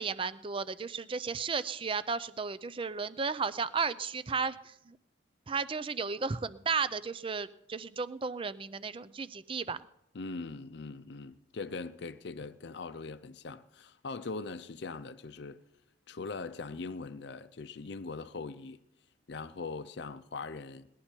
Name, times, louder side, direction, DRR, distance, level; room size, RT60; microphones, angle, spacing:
voice 1, 0.0-5.0 5.5-9.9, right 5 dB, 30° right, 0.5 m, -34 dB
voice 2, 10.1-15.6 16.1-18.8 19.3-20.9, left 4 dB, 60° left, 0.5 m, -41 dB
19.0 x 11.5 x 4.4 m
head